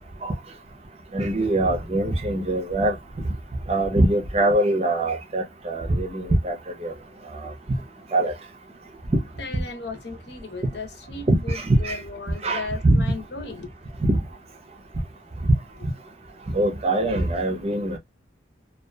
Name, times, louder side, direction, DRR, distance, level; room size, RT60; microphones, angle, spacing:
voice 1, 1.1-3.0 3.7-6.9 8.1-8.3 9.5-9.6 11.3-12.0 12.4-13.0 14.1-14.2 16.5-18.0, right 1 dB, 30° right, 0.6 m, -22 dB
voice 2, 9.4-13.7, left 3 dB, 55° left, 0.7 m, -36 dB
2.7 x 2.4 x 2.2 m
head